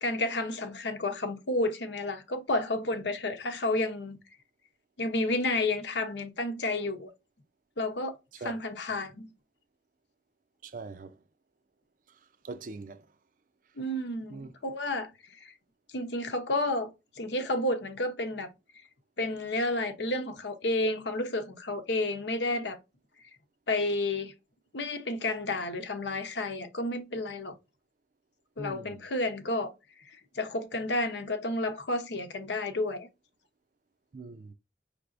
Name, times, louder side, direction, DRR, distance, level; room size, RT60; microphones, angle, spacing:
voice 1, 0.0-4.2 5.0-7.1 7.8-8.2 8.4-9.3 13.8-15.1 15.4-15.5 15.9-16.9 17.2-18.5 19.2-22.8 23.7-24.3 24.7-27.5 28.6-29.7 30.3-33.1, left 2 dB, 75° left, 0.9 m, -31 dB
voice 2, 10.6-11.2 12.4-13.1 14.3-14.5 28.6-29.0 34.1-34.5, right 3 dB, 50° right, 0.5 m, -41 dB
5.2 x 3.3 x 2.5 m
head